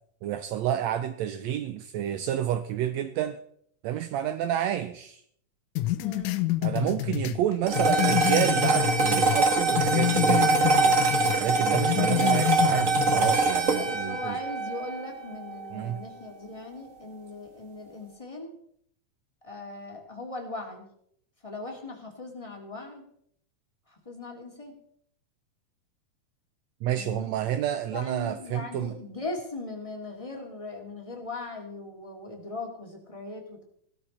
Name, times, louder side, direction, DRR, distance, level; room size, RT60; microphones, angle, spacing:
voice 1, 0.2-3.4 3.8-5.2 6.6-11.0 11.4-14.4 15.7-16.0 26.8-28.9, right 11 dB, 80° right, 11 dB, 1.6 m, -29 dB
sound 1, 5.8-9.4 9.8-11.4 11.7-13.4, left 16 dB, 80° left, 2.2 m, -28 dB
voice 2, 6.0-6.4 13.7-18.5 19.4-20.9 21.4-23.1 23.9-24.8 26.9-27.3 27.9-33.6, left 2 dB, 10° left, 1 dB, 1.9 m, -39 dB
sound 2, 7.7-16.2, right 3 dB, 40° right, 1.2 m, -24 dB
16.0 x 12.5 x 4.3 m, 0.66 s
omnidirectional pair, 3.7 m